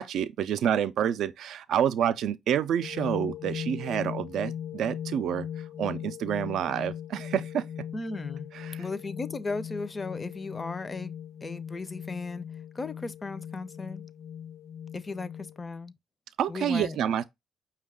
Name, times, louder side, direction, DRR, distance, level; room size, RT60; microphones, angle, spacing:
voice 1, 0.0-7.7 8.5-8.8 16.4-17.2, right 9 dB, 75° right, 0.3 m, -28 dB
sound 1, 2.8-15.6, left 9 dB, 80° left, 0.7 m, -39 dB
voice 2, 7.9-8.5 8.8-11.1 11.4-12.5 12.7-14.1 14.9-15.9 16.5-17.0, left 3 dB, 30° left, 0.4 m, -36 dB
5.3 x 2.3 x 3.5 m
cardioid pair, 90°, 0 cm